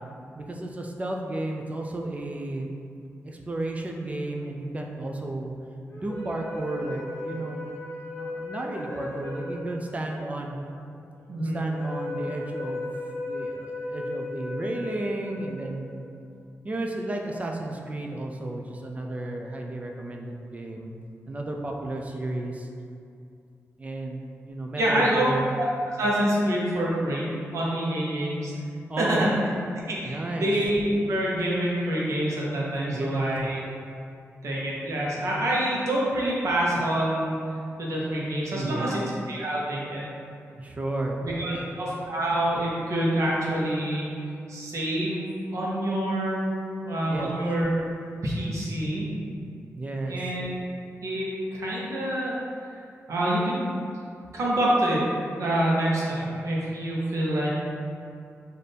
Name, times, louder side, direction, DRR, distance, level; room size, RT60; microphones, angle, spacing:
voice 1, 0.4-2.7 3.2-5.5 6.0-7.7 8.1-10.6 11.3-12.9 13.1-16.1 16.6-20.9 21.3-22.7 23.8-25.5 28.9-29.3 30.0-30.5 32.8-33.3 38.5-38.9 40.5-41.8 47.0-47.3 49.8-50.2, right 2 dB, 25° right, 1 dB, 0.4 m, -33 dB
sound 1, 5.9-16.3, left 2 dB, 50° left, 1.0 m, -36 dB
voice 2, 11.3-11.6 24.8-25.2 25.6-28.5 29.0-29.3 29.9-33.6 34.4-37.4 37.8-40.1 41.2-44.1 44.5-46.4 46.8-47.7 48.2-49.1 50.1-50.5 51.0-52.3 53.1-53.8 54.3-55.0 55.4-57.5, right 1 dB, 75° right, -5 dB, 0.9 m, -26 dB
4.2 x 2.6 x 3.3 m, 2.5 s
wide cardioid pair, 105°, 5 cm